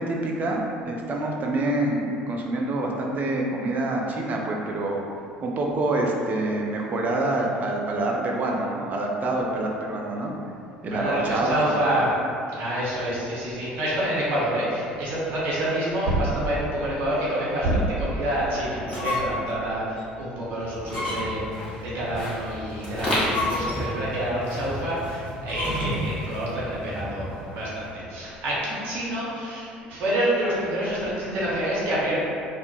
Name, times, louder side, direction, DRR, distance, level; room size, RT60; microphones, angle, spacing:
voice 1, 0.0-5.0 5.4-10.3 10.8-11.8, right 2 dB, 35° right, 0 dB, 0.4 m, -26 dB
voice 2, 10.9-12.1 12.6-21.5 21.8-32.2, right 1 dB, 50° right, -7 dB, 0.8 m, -27 dB
sound 1, 18.8-19.5 20.0-20.1 20.8-21.5 23.0-24.0 25.4-26.1, left 2 dB, 90° right, 0.5 m, -30 dB
sound 2, 20.6-27.9, equal, 15° left, 0.9 m, -33 dB
2.2 x 2.0 x 3.0 m, 2.5 s
figure-of-eight pair, 60°, 5 cm